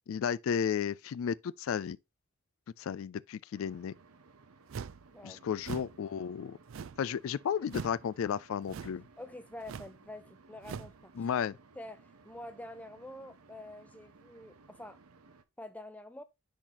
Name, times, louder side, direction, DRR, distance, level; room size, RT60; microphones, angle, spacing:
voice 1, 0.1-2.0 2.8-3.9 5.2-6.6 7.0-9.0 11.2-11.6, left 7 dB, 70° left, 0.3 m, -33 dB
sound 1, 3.5-15.4, right 3 dB, 90° right, 0.9 m, -60 dB
sound 2, 4.7-5.1 5.6-6.0 6.7-7.1 7.7-8.0 8.7-9.0 9.6-10.0 10.6-11.0, right 6 dB, 65° right, 0.4 m, -42 dB
voice 2, 9.2-11.3 11.7-15.0 15.6-16.2, left 1 dB, 5° left, 0.5 m, -47 dB
10.5 x 3.9 x 2.9 m
head